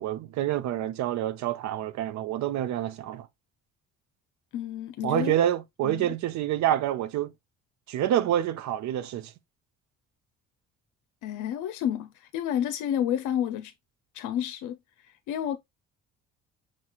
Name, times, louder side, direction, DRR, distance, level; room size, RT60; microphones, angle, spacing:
voice 1, 0.0-3.3 5.0-7.3 7.9-9.3, right 12 dB, 70° right, 0.6 m, -27 dB
voice 2, 4.5-5.4 5.8-6.1 11.2-13.7 14.1-14.8 15.3-15.6, left 10 dB, 85° left, 0.6 m, -30 dB
5.9 x 2.5 x 2.9 m
cardioid pair, 130°, 30 cm